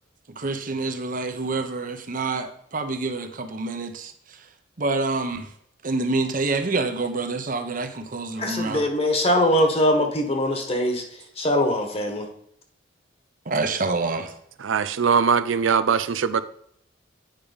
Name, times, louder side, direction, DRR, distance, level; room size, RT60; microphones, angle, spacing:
voice 1, 0.3-4.5 4.8-5.5 5.8-8.9 13.4-14.3, right 3 dB, 45° right, 0.9 m, -27 dB
voice 2, 8.4-11.0 11.4-12.3, left 1 dB, 30° left, 1.4 m, -22 dB
voice 3, 14.6-16.4, right 6 dB, 90° right, 0.5 m, -21 dB
9.0 x 5.0 x 5.2 m
head